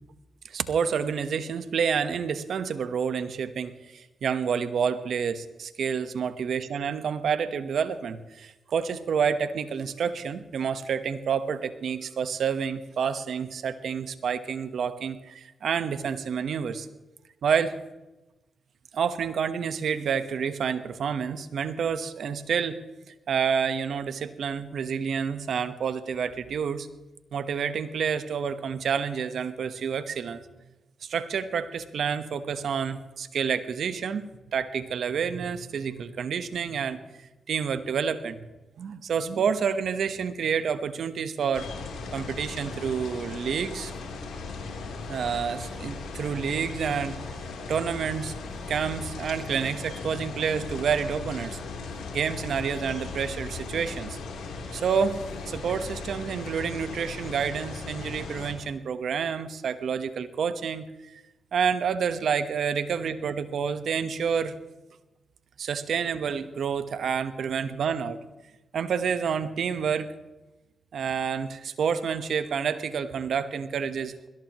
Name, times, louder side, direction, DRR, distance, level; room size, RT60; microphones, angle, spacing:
voice 1, 0.4-16.9 17.4-17.8 18.9-22.8 23.3-26.9 27.3-30.4 31.0-37.0 37.5-38.5 38.8-41.7 42.1-43.9 45.1-47.2 47.7-48.3 48.7-51.6 52.1-54.2 54.7-61.2 61.5-64.6 65.6-68.2 68.7-70.1 70.9-74.3, right 7 dB, 70° right, 11 dB, 1.1 m, -29 dB
sound 1, 41.5-58.5, left 4 dB, 85° left, 3.4 m, -37 dB
21.0 x 17.0 x 3.1 m, 1.0 s
supercardioid pair, 50°, 0 cm